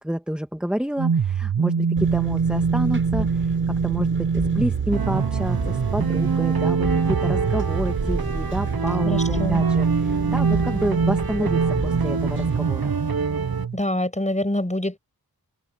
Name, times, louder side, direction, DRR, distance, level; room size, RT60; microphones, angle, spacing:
voice 1, 0.0-12.9, equal, 5° right, 1.8 m, -29 dB
sound 1, 1.0-13.8, right 6 dB, 85° right, 1.0 m, -24 dB
Engine, 2.0-12.6, right 2 dB, 30° right, 7.7 m, -32 dB
sound 2, 4.9-13.7, right 5 dB, 70° right, 1.5 m, -28 dB
voice 2, 9.0-9.6 13.7-15.0, left 1 dB, 20° left, 7.1 m, -25 dB
open air
wide cardioid pair, 50°, 38 cm